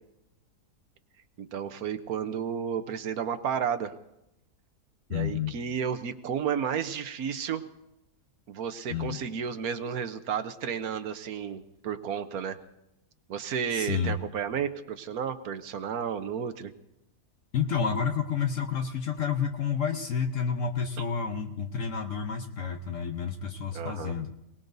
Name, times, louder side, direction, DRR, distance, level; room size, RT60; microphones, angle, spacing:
voice 1, 1.4-3.9 5.1-7.6 8.5-12.6 13.3-16.7 21.0-21.1 23.7-24.1, right 7 dB, 70° right, 8 dB, 1.3 m, -32 dB
voice 2, 5.1-5.5 8.9-9.2 13.7-14.2 17.5-24.3, left 6 dB, 60° left, 5 dB, 1.2 m, -30 dB
27.5 x 19.0 x 2.7 m, 0.88 s
omnidirectional pair, 1.6 m